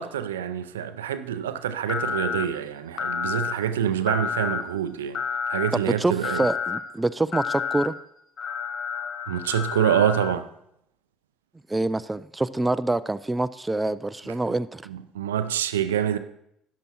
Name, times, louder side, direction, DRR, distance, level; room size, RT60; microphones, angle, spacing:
voice 1, 0.0-5.2 5.5-6.4 9.3-10.5 14.9-16.2, right 9 dB, 80° right, 0.4 m, -26 dB
sound 1, 1.9-2.5 3.0-3.5 4.1-4.6 5.1-5.7 6.2-6.8 7.3-7.9 8.4-10.3, left 6 dB, 45° left, 0.7 m, -29 dB
voice 2, 5.7-7.9 11.7-14.8, right 2 dB, 15° right, 0.4 m, -26 dB
13.0 x 9.7 x 2.9 m
figure-of-eight pair, 55°, 0 cm